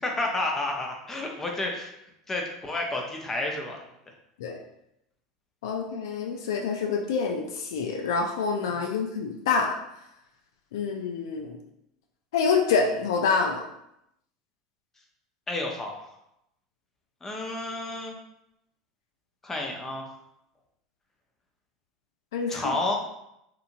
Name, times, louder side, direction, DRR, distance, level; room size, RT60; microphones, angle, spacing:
voice 1, 0.0-1.9 2.3-3.8 8.8-8.9 15.5-16.1 17.2-18.1 19.4-20.1 22.5-22.9, left 2 dB, 20° left, 1 dB, 0.6 m, -30 dB
voice 2, 5.6-9.7 10.7-11.6 12.3-13.6 22.3-22.6, left 5 dB, 70° left, 2 dB, 0.3 m, -26 dB
2.8 x 2.6 x 2.5 m, 0.81 s
hypercardioid pair, 80°, 2 cm